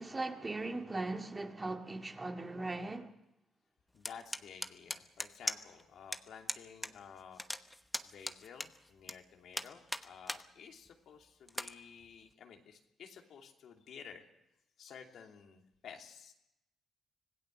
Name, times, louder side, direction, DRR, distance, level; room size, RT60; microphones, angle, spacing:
voice 1, 0.0-3.1, right 2 dB, 25° right, 2.1 m, -39 dB
voice 2, 3.9-7.4 8.0-14.2 14.8-16.3, left 7 dB, 70° left, 2.7 m, -53 dB
sound 1, 4.0-5.8 6.1-6.2 6.5-6.9 7.2-9.1 9.5-10.4 10.9-11.0 11.5-11.7, left 1 dB, 5° left, 1.1 m, -38 dB
25.5 x 17.5 x 6.5 m
cardioid pair, 90°, 0 cm